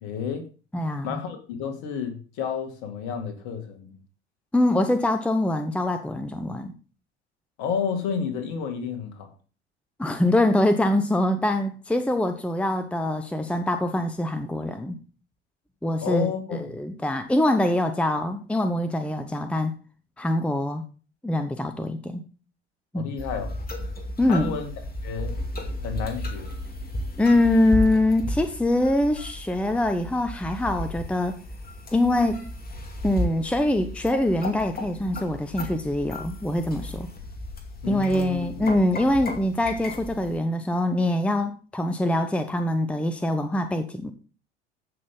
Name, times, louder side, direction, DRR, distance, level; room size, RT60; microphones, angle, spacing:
voice 1, 0.0-0.5 1.0-4.0 7.6-9.3 16.0-16.7 22.9-23.5 24.3-24.7 25.0-25.3 25.8-26.5 37.8-38.7, left 6 dB, 55° left, 2.6 m, -31 dB
voice 2, 0.7-1.2 4.5-6.7 10.0-15.0 15.8-19.7 20.2-20.8 21.2-22.2 22.9-23.1 24.2-24.6 27.2-31.4 31.9-32.4 33.0-37.1 37.9-44.1, left 1 dB, 5° left, 0.9 m, -24 dB
sound 1, 23.2-40.4, left 1 dB, 25° left, 2.5 m, -34 dB
15.0 x 6.3 x 3.9 m
figure-of-eight pair, 70°, 34 cm